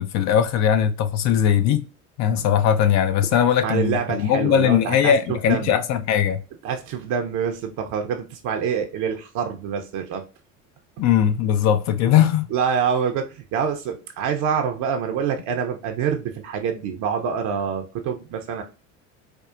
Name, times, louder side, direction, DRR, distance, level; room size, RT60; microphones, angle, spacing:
voice 1, 0.0-1.9 2.2-6.4 11.0-12.5, left 9 dB, 45° left, 0.5 m, -20 dB
voice 2, 3.6-5.7 6.6-10.3 12.5-18.6, right 7 dB, 50° right, 0.7 m, -26 dB
4.5 x 2.4 x 2.4 m
hypercardioid pair, 75°, 38 cm